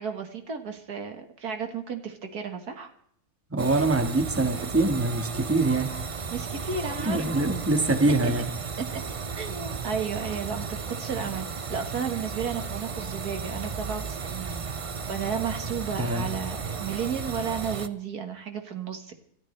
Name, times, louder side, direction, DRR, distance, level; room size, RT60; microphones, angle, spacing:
voice 1, 0.0-2.9 6.3-7.3 8.1-8.3 8.8-9.0 9.4-19.2, right 6 dB, 75° right, 6 dB, 2.1 m, -33 dB
voice 2, 3.5-5.9 7.0-8.5 16.0-16.3, right 2 dB, 10° right, 6 dB, 1.5 m, -24 dB
sound 1, 3.6-17.9, right 5 dB, 55° right, 0.3 m, -34 dB
27.0 x 13.0 x 3.3 m, 0.66 s
omnidirectional pair, 1.7 m